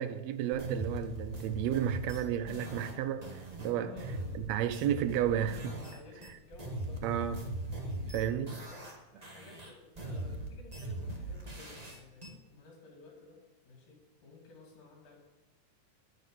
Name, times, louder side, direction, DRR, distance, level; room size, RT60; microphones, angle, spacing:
voice 1, 0.0-3.9 4.4-5.8 7.0-7.4 8.1-8.6, right 10 dB, 75° right, 1.6 m, -32 dB
sound 1, 0.5-6.0 6.2-9.0 9.2-12.3, right 1 dB, 40° right, 0.5 m, -40 dB
voice 2, 3.8-4.4 5.8-7.0 8.5-8.9 9.1-15.2, left 3 dB, 65° left, 4.0 m, -54 dB
11.0 x 9.4 x 6.7 m
omnidirectional pair, 3.7 m